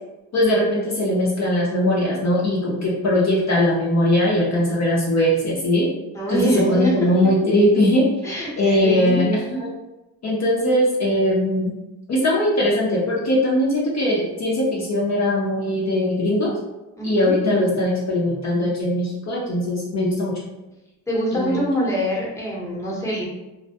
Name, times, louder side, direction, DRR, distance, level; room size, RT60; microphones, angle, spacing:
voice 1, 0.3-5.9 6.3-8.1 8.6-9.7 10.2-11.7 12.1-16.6 17.0-20.5 21.3-21.6, left 1 dB, 45° left, -4 dB, 0.6 m, -20 dB
voice 2, 6.1-6.9 8.2-8.5 8.8-9.3 17.0-17.3 21.1-23.3, right 1 dB, 10° left, -4 dB, 0.9 m, -25 dB
2.1 x 2.1 x 2.7 m, 1.0 s
cardioid pair, 80°, 38 cm